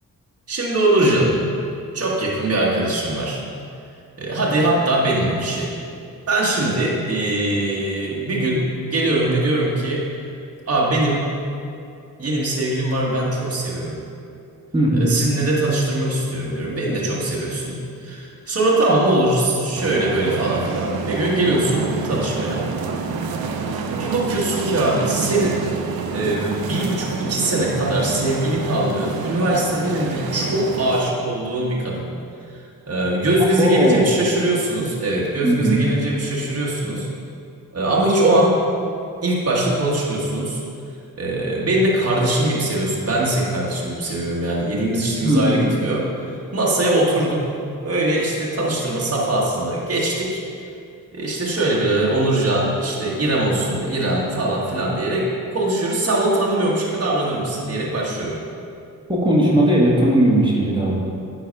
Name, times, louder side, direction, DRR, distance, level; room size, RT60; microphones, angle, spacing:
voice 1, 0.5-1.4 1.9-3.4 4.2-5.7 6.3-10.0 10.7-11.3 12.2-14.0 14.9-22.6 24.0-25.6 26.1-32.1 32.9-37.1 37.7-38.6 39.2-40.6 41.2-46.1 46.5-47.4 47.8-50.4 51.1-58.4, right 1 dB, 40° right, -4 dB, 1.5 m, -21 dB
voice 2, 14.7-15.1 33.6-34.1 35.4-35.8 45.2-45.7 59.1-60.9, right 1 dB, 15° right, -5 dB, 1.6 m, -17 dB
sound 1, 19.7-31.0, right 5 dB, 80° right, 0.7 m, -28 dB
9.6 x 4.1 x 5.3 m, 2.5 s
cardioid pair, 65°, 36 cm